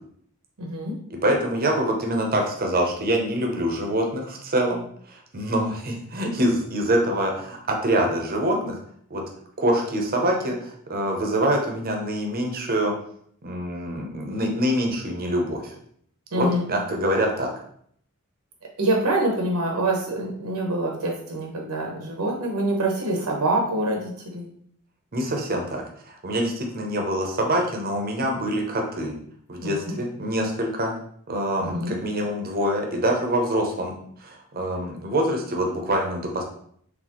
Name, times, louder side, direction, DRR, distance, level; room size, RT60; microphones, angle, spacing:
voice 1, 0.6-0.9 16.3-16.6 18.8-24.5 29.6-29.9 31.6-31.9, right 1 dB, 90° right, 0 dB, 1.0 m, -25 dB
voice 2, 1.2-4.8 5.1-8.8 9.1-9.2 9.6-12.9 13.4-15.8 16.3-17.5 25.1-29.2 29.5-30.9 31.3-33.9 34.2-36.4, right 1 dB, 45° right, 1 dB, 0.8 m, -25 dB
4.1 x 3.4 x 3.0 m, 0.63 s
head